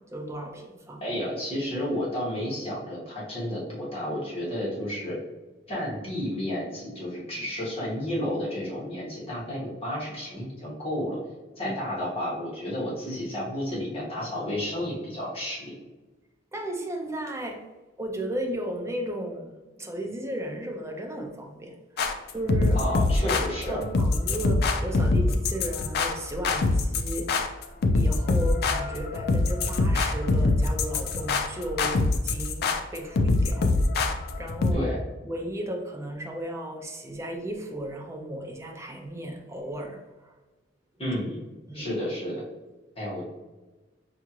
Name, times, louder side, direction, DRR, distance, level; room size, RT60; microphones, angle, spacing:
voice 1, 0.0-1.2 11.6-11.7 16.5-17.6 18.0-22.8 23.2-23.3 23.7-27.5 27.9-33.8 34.4-34.9 35.2-40.3 41.7-41.9, right 1 dB, 15° right, 2 dB, 0.4 m, -35 dB
voice 2, 1.0-5.2 5.7-11.2 11.6-15.7 22.7-23.8 34.7-35.0 41.0-41.4 41.7-42.4 43.0-43.3, left 1 dB, 30° left, -6 dB, 1.3 m, -31 dB
sound 1, 22.0-34.7, left 3 dB, 55° left, 0.4 m, -24 dB
5.4 x 2.4 x 2.9 m, 1.2 s
head